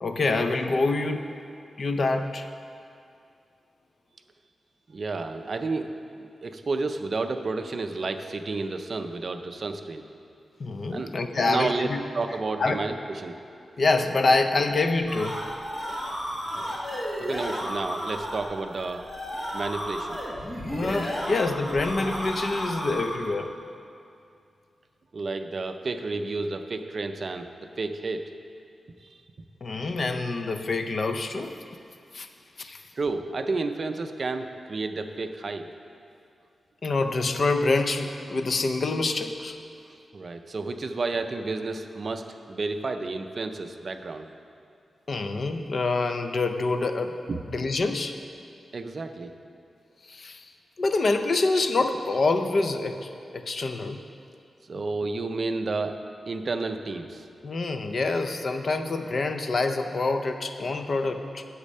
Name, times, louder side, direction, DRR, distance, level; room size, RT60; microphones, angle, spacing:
voice 1, 0.0-1.3 1.8-2.5 10.6-12.0 12.6-12.8 13.8-15.4 20.7-23.5 29.6-31.5 32.1-32.3 32.6-32.8 36.8-39.6 45.1-47.2 47.5-48.2 50.0-50.5 50.8-54.0 57.4-61.4, left 3 dB, 45° left, 6 dB, 0.5 m, -26 dB
voice 2, 4.9-5.9 6.4-10.0 10.9-11.1 11.4-11.9 12.1-13.4 17.3-19.1 19.5-20.2 25.1-28.2 29.0-29.1 33.0-35.7 40.1-44.2 47.3-47.4 48.7-49.3 54.7-56.0 56.3-57.2, right 3 dB, 45° right, 7 dB, 0.5 m, -31 dB
sound 1, 15.0-23.3, equal, 25° left, 1.5 m, -33 dB
8.5 x 7.3 x 5.4 m, 2.5 s
wide cardioid pair, 155°, 0 cm